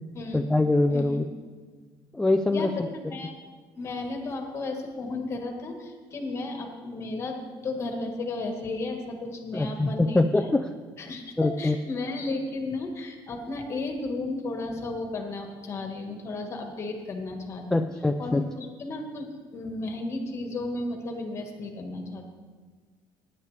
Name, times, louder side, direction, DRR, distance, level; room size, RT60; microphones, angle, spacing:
voice 1, 0.3-1.3 2.1-2.9 9.5-10.7 11.4-11.8 17.7-18.4, left 2 dB, 5° left, 5 dB, 0.3 m, -24 dB
voice 2, 2.5-3.3 3.8-10.5 11.0-17.8 18.2-22.2, left 2 dB, 30° left, 4 dB, 1.5 m, -34 dB
16.5 x 10.0 x 3.3 m, 1.5 s
cardioid pair, 160°, 9 cm